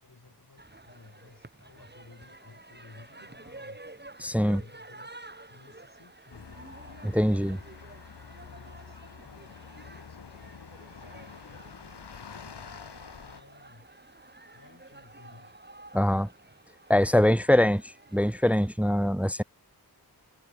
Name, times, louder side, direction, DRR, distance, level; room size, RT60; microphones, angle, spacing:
voice 1, 0.0-3.8 4.4-6.7 7.2-8.2 8.4-12.5 13.2-13.9 14.5-15.6, left 3 dB, 55° left, 6.0 m, -56 dB
sound 1, 0.6-18.8, right 2 dB, 25° right, 3.2 m, -51 dB
voice 2, 4.2-4.6 7.0-7.6 15.9-16.3 16.9-17.8 18.1-19.4, left 1 dB, 5° right, 0.4 m, -23 dB
sound 2, 6.3-13.4, left 6 dB, 90° left, 1.8 m, -47 dB
wide cardioid pair, 60°, 39 cm